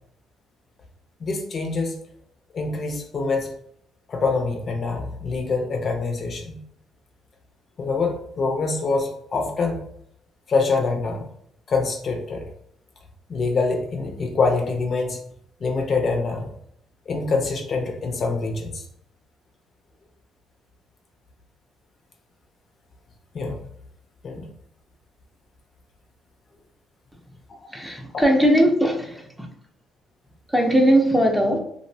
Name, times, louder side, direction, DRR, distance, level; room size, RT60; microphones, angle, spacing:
voice 1, 1.2-1.9 2.5-3.5 4.1-6.6 7.8-9.8 10.5-11.2 11.7-12.4 13.3-15.2 15.6-16.5 17.1-18.8 23.3-23.7 24.2-24.5 28.1-28.3, left 4 dB, 50° left, 2 dB, 0.5 m, -25 dB
voice 2, 27.7-29.5 30.5-31.6, equal, 5° right, 1 dB, 0.5 m, -19 dB
2.5 x 2.1 x 2.6 m, 0.71 s
cardioid pair, 95°, 0 cm